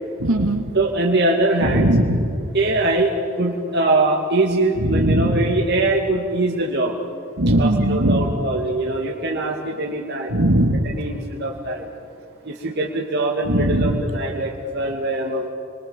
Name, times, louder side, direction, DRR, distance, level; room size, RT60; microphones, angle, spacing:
voice 1, 0.2-0.7 1.6-2.4 4.8-5.6 7.4-8.5 10.3-11.0 13.5-14.0, right 1 dB, 80° right, 5 dB, 2.4 m, -19 dB
voice 2, 0.7-1.9 2.5-3.1 3.4-6.9 7.6-10.4 10.9-11.9 12.4-15.5, right 2 dB, 50° right, -1 dB, 2.6 m, -22 dB
28.5 x 24.0 x 7.6 m, 2.4 s
head